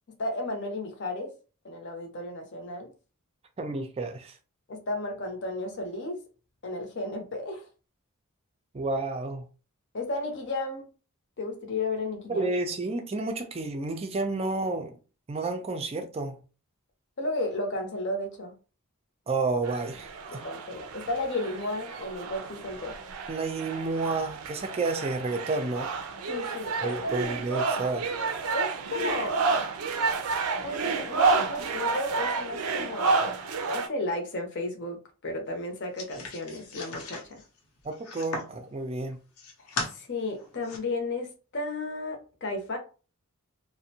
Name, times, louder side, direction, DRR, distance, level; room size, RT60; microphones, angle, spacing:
voice 1, 0.2-1.3 1.6-2.9 4.7-6.2 6.6-7.7 9.9-10.8 11.4-12.5 17.2-18.5 20.3-22.9 26.3-27.2 28.5-29.4 30.6-33.3 33.7-37.4 39.8-42.8, left 2 dB, 55° left, 0.7 m, -33 dB
voice 2, 3.6-4.3 8.7-9.5 12.3-14.9 15.3-16.4 19.3-20.4 23.3-25.9 26.8-28.1 37.8-39.2, right 3 dB, 25° right, 0.4 m, -30 dB
sound 1, 19.6-33.9, right 4 dB, 85° right, 0.5 m, -30 dB
sound 2, 36.0-38.6 39.1-39.9 40.4-40.8, left 3 dB, 85° left, 0.8 m, -37 dB
2.5 x 2.1 x 2.7 m
head